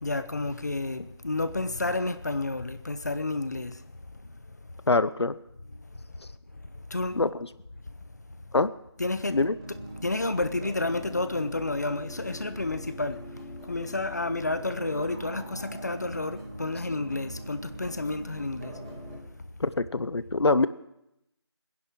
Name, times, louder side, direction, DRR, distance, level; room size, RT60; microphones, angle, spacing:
voice 1, 0.0-3.7 6.9-7.2 9.0-9.4 10.0-13.2 13.7-18.7, left 2 dB, 40° left, 0.9 m, -30 dB
voice 2, 4.9-5.3 7.2-7.5 8.5-8.7 9.3-9.5 19.6-20.7, left 3 dB, 70° left, 0.8 m, -24 dB
sound 1, 9.2-19.2, right 1 dB, 15° right, 2.7 m, -42 dB
22.0 x 10.5 x 6.1 m
figure-of-eight pair, 175°, 14 cm